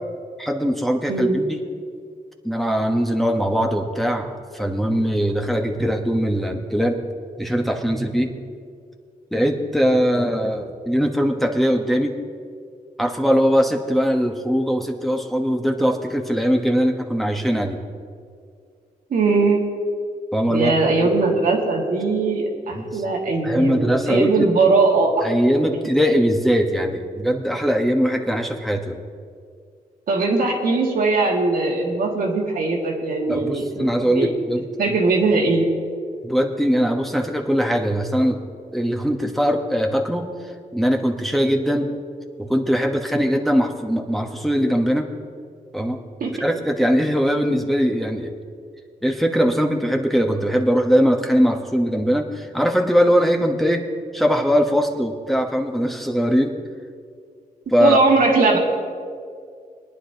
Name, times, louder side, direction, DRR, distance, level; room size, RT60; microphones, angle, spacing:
voice 1, 0.4-1.6 2.4-7.0 7.4-8.3 9.3-12.1 13.0-17.8 20.3-20.7 22.7-23.0 23.4-24.5 25.2-29.0 33.3-35.0 36.2-38.4 38.7-40.3 40.7-41.9 42.4-45.1 45.7-46.0 46.4-48.3 49.0-53.8 54.1-56.6 57.7-58.0, equal, ahead, 2 dB, 1.1 m, -21 dB
voice 2, 1.1-1.4 19.1-19.7 20.5-25.2 30.1-34.3 34.8-35.7 46.2-46.3 57.8-58.6, right 3 dB, 75° right, -1 dB, 1.9 m, -20 dB
22.5 x 9.8 x 2.9 m, 2.2 s
cardioid pair, 90°, 15 cm